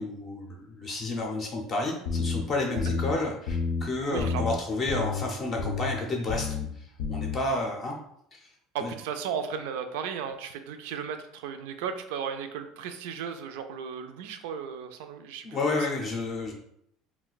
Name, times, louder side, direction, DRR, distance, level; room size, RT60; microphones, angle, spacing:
voice 1, 0.0-6.5 6.8-8.0 8.3-8.5 8.8-8.9 15.4-16.5, left 2 dB, 30° left, 0 dB, 0.5 m, -31 dB
sound 1, 2.1-2.4 2.8-3.1 3.5-3.8 4.2-4.5 4.9-5.2 5.6-5.9 6.3-6.7 7.0-7.4, left 5 dB, 80° left, 0.5 m, -29 dB
voice 2, 4.1-4.5 8.7-15.9, right 7 dB, 90° right, 7 dB, 0.3 m, -35 dB
2.4 x 2.2 x 3.9 m, 0.72 s
cardioid pair, 155°, 0 cm